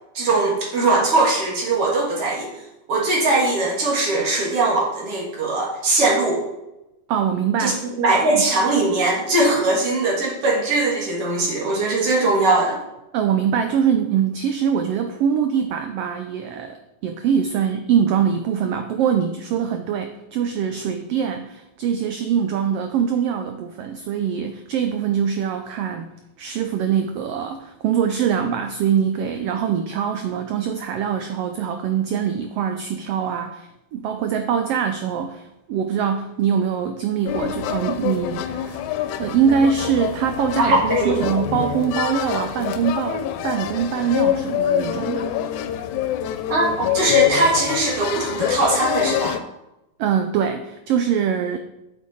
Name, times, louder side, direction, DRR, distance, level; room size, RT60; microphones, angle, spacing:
voice 1, 0.1-2.5 2.9-6.4 7.6-12.8 40.6-41.3 46.5-49.4, right 2 dB, 55° right, -3 dB, 2.5 m, -20 dB
voice 2, 7.1-7.8 8.3-8.5 13.1-26.1 26.4-38.8 39.2-45.3 50.0-51.6, right 7 dB, 85° right, 7 dB, 1.3 m, -23 dB
sound 1, 37.3-49.4, left 11 dB, 85° left, 1.9 m, -25 dB
8.3 x 6.6 x 4.1 m, 0.93 s
omnidirectional pair, 3.3 m